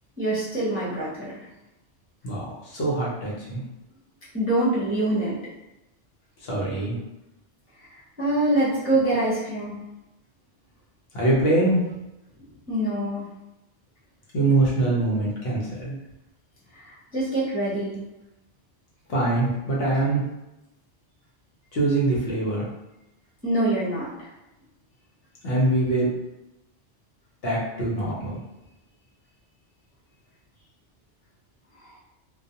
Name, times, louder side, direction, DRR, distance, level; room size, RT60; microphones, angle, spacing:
voice 1, 0.2-1.5 4.3-5.4 7.8-9.8 12.7-13.3 16.7-18.0 23.4-24.3 31.8-31.9, right 1 dB, 15° right, -10 dB, 0.6 m, -25 dB
voice 2, 2.2-3.6 6.4-7.0 11.1-11.8 14.3-16.0 19.1-20.2 21.7-22.6 25.4-26.1 27.4-28.4, right 2 dB, 60° left, -5 dB, 0.9 m, -23 dB
2.3 x 2.3 x 2.7 m, 0.93 s
omnidirectional pair, 1.2 m